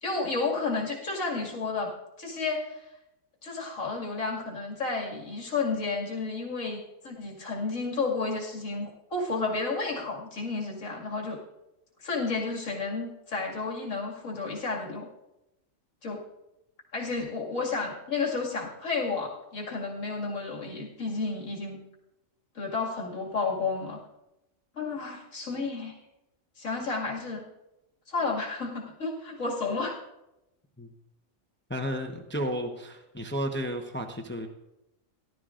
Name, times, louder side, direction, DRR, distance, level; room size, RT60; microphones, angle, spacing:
voice 1, 0.0-2.8 3.4-11.4 12.0-15.1 16.0-16.2 16.9-21.8 22.5-24.0 24.7-26.0 26.6-27.4 28.1-30.0, left 4 dB, 85° left, -2 dB, 2.6 m, -31 dB
voice 2, 31.7-34.5, equal, 10° left, 4 dB, 0.7 m, -32 dB
17.5 x 11.5 x 2.5 m, 0.90 s
omnidirectional pair, 1.3 m